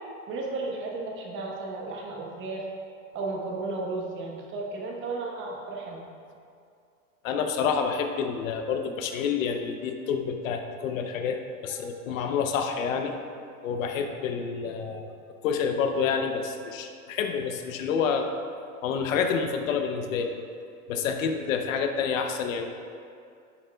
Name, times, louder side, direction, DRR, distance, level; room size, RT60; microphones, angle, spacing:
voice 1, 0.3-2.7 3.1-6.0, right 3 dB, 25° right, -1 dB, 1.1 m, -34 dB
voice 2, 7.2-11.4 11.6-13.1 13.6-15.1 15.4-18.3 18.8-20.3 20.9-22.7, left 6 dB, 60° left, 5 dB, 0.8 m, -28 dB
10.0 x 7.5 x 2.3 m, 2.4 s
supercardioid pair, 140°, 44 cm